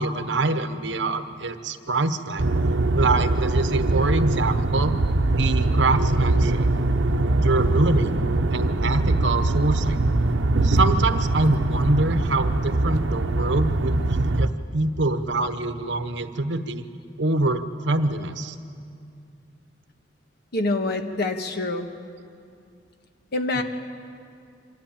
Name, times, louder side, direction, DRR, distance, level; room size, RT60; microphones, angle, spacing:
voice 1, 0.0-2.4 2.9-4.9 5.3-6.7 7.4-8.1 8.5-10.0 10.6-16.8 17.2-18.5 23.6-23.7, right 2 dB, 70° right, 9 dB, 1.1 m, -25 dB
sound 1, 2.4-14.5, right 2 dB, 90° right, 0.8 m, -22 dB
voice 2, 20.5-21.9 23.3-23.6, left 2 dB, 60° left, 6 dB, 1.5 m, -25 dB
25.0 x 13.0 x 8.8 m, 2.3 s
head